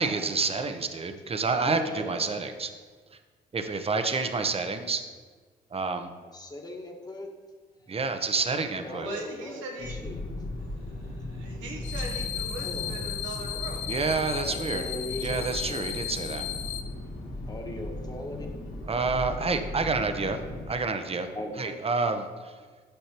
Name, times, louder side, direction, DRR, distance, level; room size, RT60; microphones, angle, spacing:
voice 1, 0.0-2.7 3.5-5.0 5.7-6.1 7.9-9.1 13.9-14.8 15.2-16.5 18.9-20.4 20.7-21.3 21.6-22.3, right 4 dB, 30° right, 7 dB, 0.8 m, -28 dB
voice 2, 1.6-2.1 6.3-7.3 8.7-10.2 12.6-13.5 14.4-15.9 17.5-18.5 21.3-21.8, left 1 dB, 20° left, 1 dB, 1.4 m, -39 dB
voice 3, 9.0-10.0 10.5-13.8, right 2 dB, 80° right, 0 dB, 1.2 m, -40 dB
sound 1, 9.8-20.6, left 1 dB, 55° left, 1.7 m, -37 dB
sound 2, 11.8-16.8, left 11 dB, 80° left, 0.4 m, -35 dB
8.5 x 5.5 x 3.0 m, 1.5 s
hypercardioid pair, 50°, 19 cm